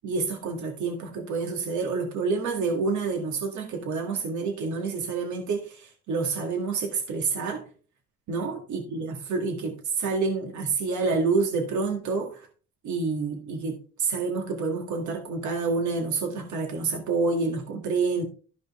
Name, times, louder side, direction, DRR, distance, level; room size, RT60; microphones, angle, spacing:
voice 1, 0.0-7.6 8.3-12.4 12.8-18.2, right 4 dB, 70° right, 1.9 m, -28 dB
13.0 x 5.2 x 3.7 m
cardioid pair, 90°, 30 cm